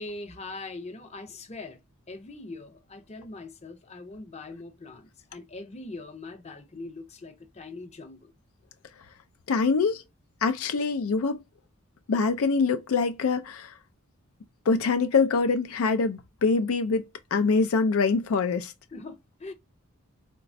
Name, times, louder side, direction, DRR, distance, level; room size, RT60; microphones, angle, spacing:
voice 1, 0.0-1.8 2.1-8.3 18.9-19.5, left 2 dB, 30° left, 0.6 m, -41 dB
voice 2, 9.5-10.0 10.4-11.4 12.1-13.7 14.7-17.0 17.3-18.7, left 4 dB, 75° left, 0.4 m, -24 dB
3.9 x 2.2 x 2.5 m
head